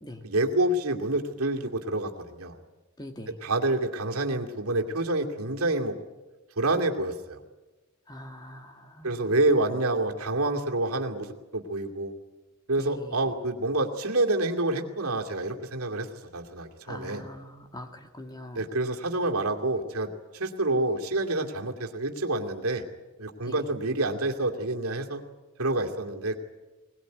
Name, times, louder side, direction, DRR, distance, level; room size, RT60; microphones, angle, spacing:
voice 1, 0.2-2.6 3.4-5.9 6.6-7.4 9.0-12.1 12.7-17.2 18.5-22.8 23.2-25.2 25.6-26.4, right 2 dB, 85° right, 2 dB, 2.5 m, -28 dB
voice 2, 3.0-3.4 8.1-9.3 12.8-13.2 16.9-18.7 23.4-23.6, left 1 dB, 20° left, 5 dB, 2.2 m, -43 dB
21.5 x 20.0 x 9.4 m, 1.2 s
head